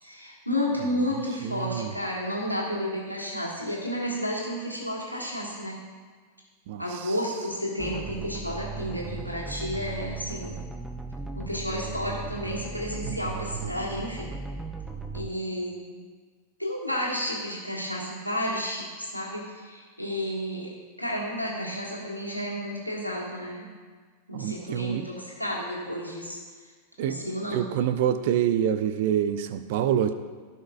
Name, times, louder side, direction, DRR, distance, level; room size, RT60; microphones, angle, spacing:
voice 1, 0.0-5.8 6.8-10.6 11.4-14.3 15.1-16.0 16.6-20.7 21.0-23.7 24.3-26.4 27.0-27.7, equal, 90° left, -5 dB, 1.9 m, -31 dB
voice 2, 1.4-1.9 6.7-7.1 13.0-13.2 24.3-25.1 27.0-30.1, right 9 dB, 50° right, 11 dB, 0.5 m, -27 dB
sound 1, 7.8-15.3, right 4 dB, 5° right, 0.6 m, -37 dB
15.5 x 5.7 x 2.5 m, 1.5 s
figure-of-eight pair, 90°, 0 cm